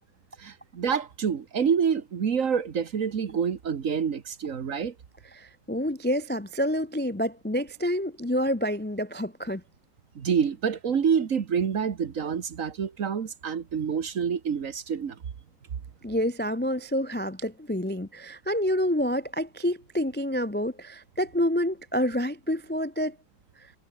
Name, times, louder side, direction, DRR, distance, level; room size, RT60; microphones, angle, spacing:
voice 1, 0.4-4.9 10.1-15.2, right 7 dB, 50° right, 1.5 m, -27 dB
voice 2, 5.3-9.6 16.0-23.2 23.6-23.7, equal, 10° left, 0.4 m, -28 dB
omnidirectional pair, 1.9 m